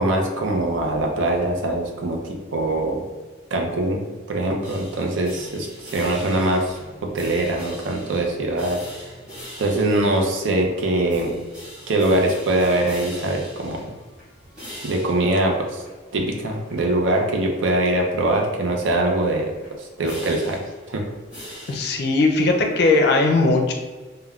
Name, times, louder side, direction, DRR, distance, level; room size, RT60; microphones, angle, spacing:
voice 1, 0.0-2.2 2.5-3.0 3.5-4.0 4.3-5.7 5.9-8.8 9.6-11.4 11.9-13.9 14.8-15.7 16.1-19.5 20.0-20.6 20.9-21.0, right 1 dB, 75° right, 1 dB, 0.5 m, -22 dB
sound 1, 4.6-22.1, equal, 5° right, 1.4 m, -42 dB
voice 2, 21.7-23.7, left 3 dB, 55° left, 2 dB, 0.4 m, -18 dB
3.5 x 2.1 x 2.3 m, 1.3 s
head